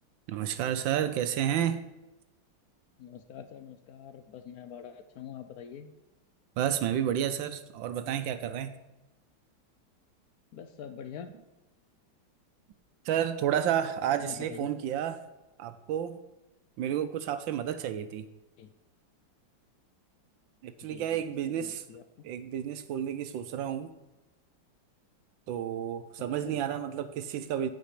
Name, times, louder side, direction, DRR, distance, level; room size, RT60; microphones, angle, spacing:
voice 1, 0.3-1.8 6.6-8.7 13.0-15.2 15.6-16.2 16.8-18.3 20.6-21.8 22.2-23.9 25.5-27.7, right 10 dB, 75° right, 11 dB, 1.3 m, -31 dB
voice 2, 3.0-5.9 10.5-11.3 14.2-14.7 18.6-18.7 20.8-22.0 26.4-26.6, left 8 dB, 75° left, 9 dB, 0.8 m, -45 dB
8.5 x 5.2 x 7.5 m, 1.0 s
omnidirectional pair, 2.3 m